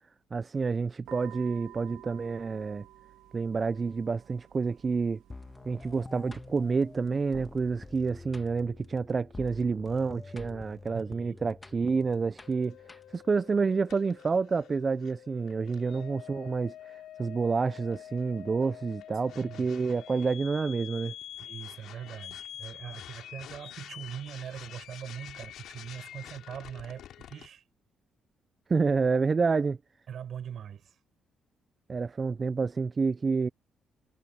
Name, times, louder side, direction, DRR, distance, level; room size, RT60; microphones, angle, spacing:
voice 1, 0.3-2.9 3.3-5.2 5.7-12.8 13.1-21.1 28.7-29.8 31.9-33.5, right 4 dB, 35° right, 0.4 m, -29 dB
sound 1, 1.0-8.0, right 14 dB, 85° right, 2.1 m, -53 dB
sound 2, 5.3-13.4, left 3 dB, 20° left, 1.5 m, -48 dB
voice 2, 10.9-11.4 19.3-19.7 21.4-27.6 30.1-31.0, right 8 dB, 60° right, 6.3 m, -42 dB
sound 3, 12.4-27.5, left 11 dB, 80° left, 3.6 m, -47 dB
cardioid pair, 90°, 0 cm